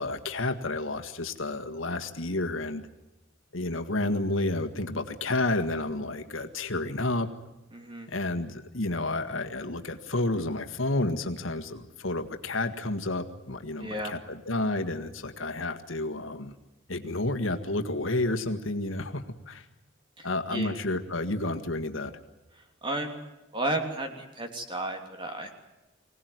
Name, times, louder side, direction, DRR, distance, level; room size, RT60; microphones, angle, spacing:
voice 1, 0.0-2.9 3.5-7.3 8.1-16.5 16.9-19.7 20.2-22.1, left 2 dB, 70° left, 7 dB, 1.8 m, -30 dB
voice 2, 7.7-8.1 13.8-14.1 20.2-20.8 22.8-23.2 23.5-25.5, right 1 dB, 25° right, 4 dB, 3.2 m, -33 dB
25.0 x 18.0 x 9.5 m, 1.0 s
head